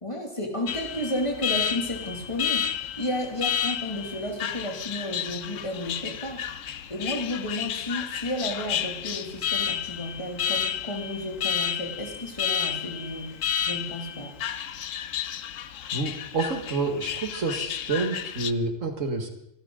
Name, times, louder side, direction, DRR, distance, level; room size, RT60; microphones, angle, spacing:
voice 1, 0.0-2.7 3.0-6.5 6.9-14.3, left 1 dB, 25° left, 1 dB, 2.7 m, -32 dB
Alarm, 0.7-18.5, left 9 dB, 90° left, 1.1 m, -31 dB
voice 2, 15.9-19.3, right 3 dB, 85° right, 6 dB, 2.2 m, -28 dB
25.5 x 12.5 x 3.9 m, 0.79 s
omnidirectional pair, 1.3 m